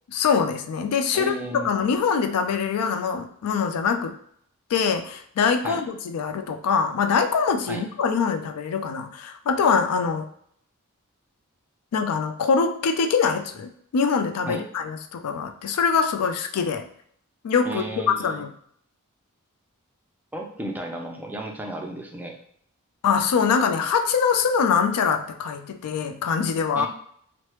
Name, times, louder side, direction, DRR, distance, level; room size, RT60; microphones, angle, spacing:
voice 1, 0.1-4.2 4.7-10.3 11.9-16.9 17.4-18.5 23.0-26.9, left 6 dB, 90° left, 6 dB, 0.4 m, -23 dB
voice 2, 1.1-1.7 5.6-5.8 7.7-7.8 14.5-14.6 17.6-18.4 20.3-22.4 26.8-26.9, right 1 dB, 10° right, 1 dB, 0.4 m, -33 dB
3.1 x 2.0 x 2.9 m, 0.65 s
head